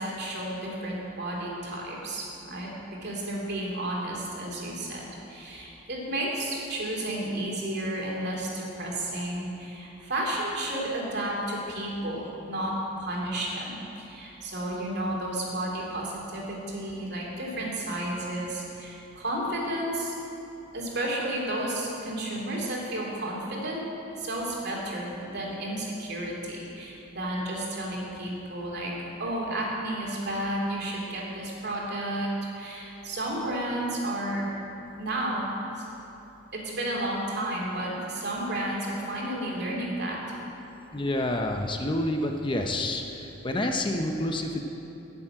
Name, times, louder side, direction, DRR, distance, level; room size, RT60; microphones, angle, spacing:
voice 1, 0.0-2.7 3.0-20.1 20.7-23.8 24.2-28.9 29.2-34.5 35.0-35.8 36.5-40.2, right 1 dB, 55° right, -2 dB, 2.8 m, -32 dB
voice 2, 40.9-44.6, left 1 dB, 25° left, 3 dB, 0.7 m, -28 dB
12.5 x 7.5 x 8.8 m, 2.9 s
head